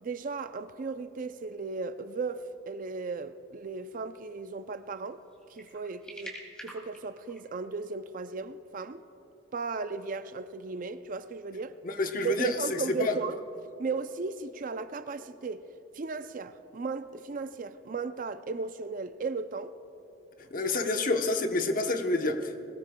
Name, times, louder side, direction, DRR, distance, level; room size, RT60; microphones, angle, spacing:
voice 1, 0.0-5.2 5.5-6.4 6.6-9.0 9.5-11.8 12.2-13.4 13.8-15.7 15.9-19.8 20.6-20.7, right 4 dB, 45° right, 0.4 m, -36 dB
sound 1, 5.2-7.6, right 1 dB, 5° left, 2.4 m, -46 dB
voice 2, 11.8-13.2 20.4-22.8, left 2 dB, 45° left, 0.9 m, -29 dB
21.5 x 18.0 x 2.2 m
head